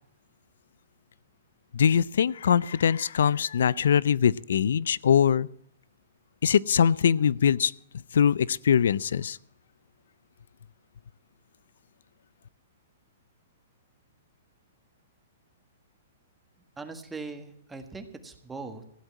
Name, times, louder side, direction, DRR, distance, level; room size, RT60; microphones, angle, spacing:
voice 1, 1.7-5.5 6.4-7.7 8.1-9.4, left 8 dB, 80° left, 22 dB, 0.5 m, -22 dB
voice 2, 16.8-18.8, right 3 dB, 10° right, 7 dB, 1.5 m, -40 dB
15.5 x 8.1 x 8.6 m, 0.71 s
hypercardioid pair, 145°, 0 cm